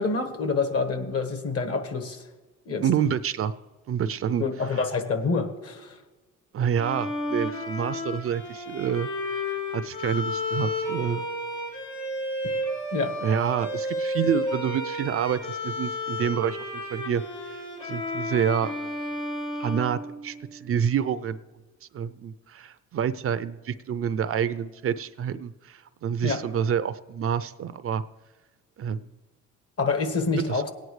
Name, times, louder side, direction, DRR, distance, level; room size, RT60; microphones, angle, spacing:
voice 1, 0.0-2.2 2.6-2.8 4.4-6.0 12.9-13.1 26.2-26.4 29.8-30.7, left 4 dB, 50° left, 8 dB, 1.5 m, -27 dB
voice 2, 2.8-3.5 3.9-4.4 6.5-11.3 13.2-16.6 16.9-18.9 19.6-21.4 21.9-28.0 28.8-29.1 30.4-30.7, right 8 dB, 50° right, 14 dB, 0.5 m, -28 dB
Bowed string instrument, 6.8-20.7, left 1 dB, 85° left, 3.2 m, -32 dB
17.5 x 9.3 x 3.2 m, 1.2 s
cardioid pair, 90°, 30 cm